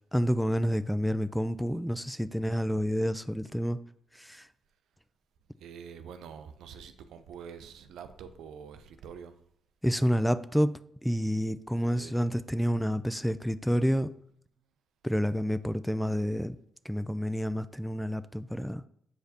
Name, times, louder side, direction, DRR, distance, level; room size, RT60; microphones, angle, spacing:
voice 1, 0.1-3.8 4.1-4.5 9.8-14.1 15.0-16.6 16.8-18.8, equal, 5° left, 0.4 m, -29 dB
voice 2, 5.6-9.4 11.9-12.2, right 7 dB, 75° right, 0.5 m, -46 dB
7.6 x 4.8 x 2.8 m
hypercardioid pair, 45°, 0 cm